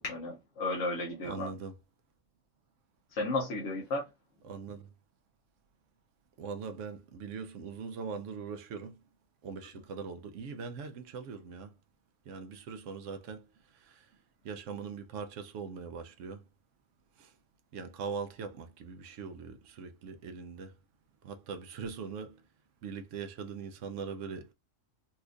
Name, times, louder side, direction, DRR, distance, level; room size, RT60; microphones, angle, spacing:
voice 1, 0.0-1.5 3.1-4.0, left 2 dB, 70° left, 1.1 m, -33 dB
voice 2, 1.2-1.8 4.4-4.9 6.4-9.0 9.4-11.7 12.3-13.5 13.7-14.1 14.4-16.4 17.2-17.3 17.7-20.7 21.2-22.4 22.8-24.5, right 5 dB, 75° right, 0.9 m, -41 dB
4.2 x 2.5 x 2.4 m
omnidirectional pair, 1.3 m